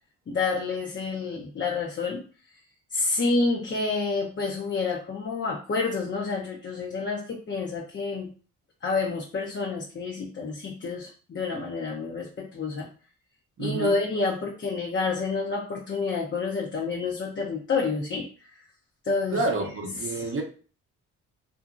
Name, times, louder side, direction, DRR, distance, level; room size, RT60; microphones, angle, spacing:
voice 1, 0.3-2.3 2.9-8.3 8.8-12.9 13.6-18.6 19.0-19.5 20.1-20.2, left 4 dB, 35° left, -2 dB, 0.6 m, -29 dB
voice 2, 13.6-14.0 19.3-20.4, right 3 dB, 40° right, 2 dB, 0.7 m, -28 dB
2.8 x 2.6 x 2.4 m, 0.39 s
cardioid pair, 70°, 34 cm